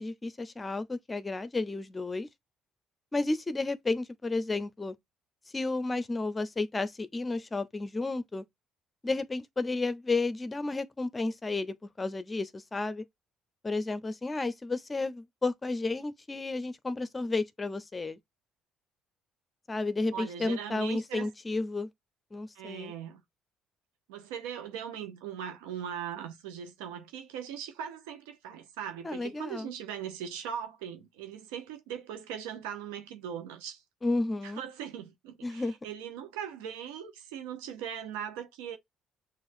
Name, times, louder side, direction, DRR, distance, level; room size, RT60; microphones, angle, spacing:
voice 1, 0.0-2.3 3.1-5.0 5.5-8.4 9.0-13.0 13.6-18.2 19.7-21.9 22.3-22.9 29.0-29.7 34.0-34.6 35.4-35.7, left 3 dB, 25° left, 0.7 m, -32 dB
voice 2, 20.1-21.3 22.5-23.2 24.1-33.8 34.4-38.8, right 9 dB, 85° right, 0.8 m, -40 dB
6.4 x 2.6 x 2.6 m
hypercardioid pair, 60°, 0 cm